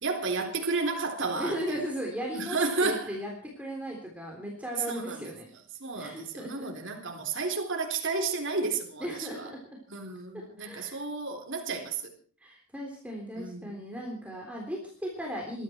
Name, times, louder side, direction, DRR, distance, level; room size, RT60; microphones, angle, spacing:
voice 1, 0.0-1.8 2.3-3.2 4.9-5.3 5.8-9.5 9.9-12.0 13.3-13.8, right 3 dB, 55° right, 3.8 m, -32 dB
voice 2, 1.4-5.5 6.0-6.7 9.0-9.6 10.3-11.0 12.4-15.6, equal, 5° right, 3.5 m, -37 dB
21.5 x 13.5 x 4.5 m
head